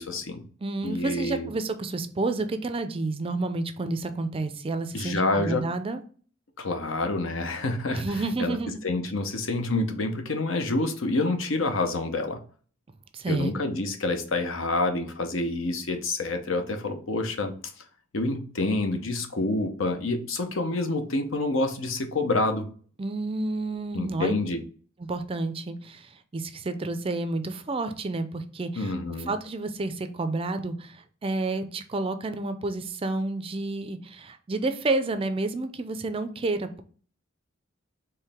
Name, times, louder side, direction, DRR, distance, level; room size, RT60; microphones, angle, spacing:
voice 1, 0.0-0.4 0.8-1.5 4.9-5.6 6.6-8.6 8.8-12.4 13.3-17.5 18.1-22.7 23.9-24.6 28.8-29.3, left 2 dB, 70° left, 7 dB, 0.8 m, -28 dB
voice 2, 0.6-6.0 7.9-8.8 13.1-13.5 23.0-24.3 25.0-28.9 29.3-36.8, right 2 dB, 25° right, 9 dB, 0.4 m, -30 dB
4.7 x 3.2 x 3.4 m, 0.43 s
head